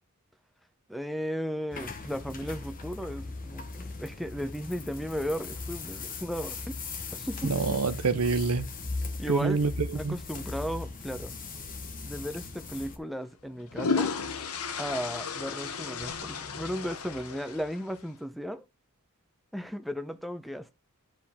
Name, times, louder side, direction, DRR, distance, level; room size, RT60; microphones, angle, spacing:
voice 1, 0.9-6.7 7.1-7.5 9.2-11.3 12.0-14.1 14.5-18.7 19.5-20.7, equal, ahead, 0.6 m, -35 dB
sound 1, 1.7-13.0, left 3 dB, 40° left, 1.1 m, -39 dB
voice 2, 7.4-8.7 9.3-10.2, right 4 dB, 85° right, 0.7 m, -27 dB
toilet chain, 12.0-12.2 13.4-18.0, left 5 dB, 85° left, 0.9 m, -34 dB
10.0 x 5.0 x 3.6 m
head